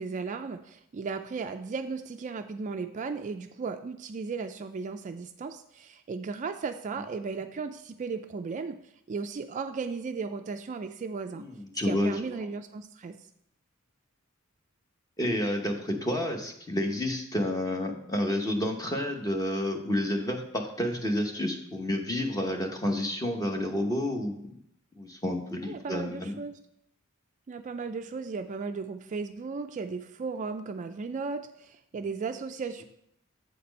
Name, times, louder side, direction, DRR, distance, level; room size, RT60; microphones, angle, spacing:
voice 1, 0.0-8.8 9.1-11.5 11.8-13.2 25.6-26.6 27.5-32.8, right 4 dB, 35° right, 8 dB, 0.3 m, -35 dB
voice 2, 11.4-12.1 15.2-24.5 25.0-26.4, left 1 dB, 15° left, 3 dB, 0.9 m, -30 dB
7.9 x 4.3 x 5.2 m, 0.74 s
head